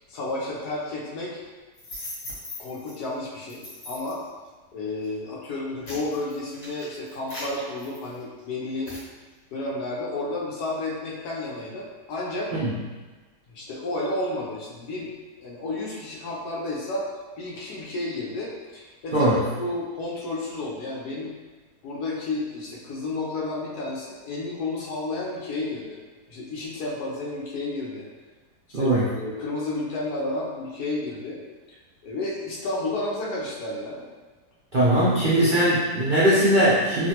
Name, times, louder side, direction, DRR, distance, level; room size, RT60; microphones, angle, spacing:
voice 1, 0.1-1.4 2.6-4.2 4.7-8.9 9.5-12.5 13.5-15.1 15.4-17.1 17.4-21.3 21.8-26.0 26.3-28.1 28.7-31.4 31.7-31.8 32.0-34.0 35.2-35.5, left 2 dB, 70° left, -4 dB, 1.2 m, -31 dB
sound 1, 1.7-2.9 3.5-4.2 4.9-5.1 5.5-8.4 8.9-9.1, left 1 dB, 55° left, 1.7 m, -39 dB
voice 2, 19.1-19.4 28.7-29.1 34.7-37.1, right 1 dB, 65° right, -10 dB, 0.4 m, -20 dB
3.2 x 2.5 x 2.8 m, 1.3 s
omnidirectional pair, 1.9 m